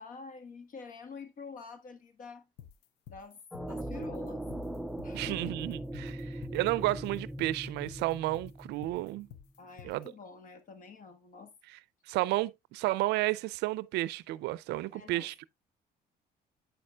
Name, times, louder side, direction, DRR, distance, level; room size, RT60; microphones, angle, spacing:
voice 1, 0.0-2.5 3.1-3.4 3.7-4.4 5.0-5.5 6.1-6.4 9.6-11.5 14.9-15.3, left 4 dB, 50° left, 1.4 m, -47 dB
sound 1, 2.6-10.1, left 10 dB, 85° left, 0.6 m, -51 dB
sound 2, 3.5-9.4, right 1 dB, ahead, 0.4 m, -40 dB
voice 2, 5.1-6.2 6.5-9.3 9.8-10.1 12.1-15.4, right 18 dB, 85° right, 0.4 m, -32 dB
9.0 x 6.6 x 2.3 m
cardioid pair, 110°, 17 cm